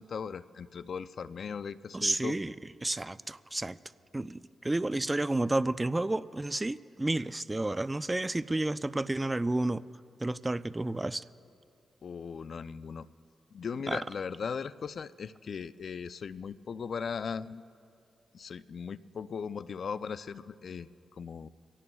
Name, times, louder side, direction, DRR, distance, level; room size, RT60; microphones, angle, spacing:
voice 1, 0.0-2.4 12.0-13.1 13.5-17.6 18.3-21.5, left 6 dB, 65° left, 15 dB, 0.4 m, -38 dB
voice 2, 1.9-2.5 2.8-3.8 4.1-9.8 10.2-11.2 13.9-14.0, right 2 dB, 20° right, 16 dB, 0.4 m, -31 dB
24.0 x 17.5 x 2.3 m, 2.4 s
supercardioid pair, 45°, 0 cm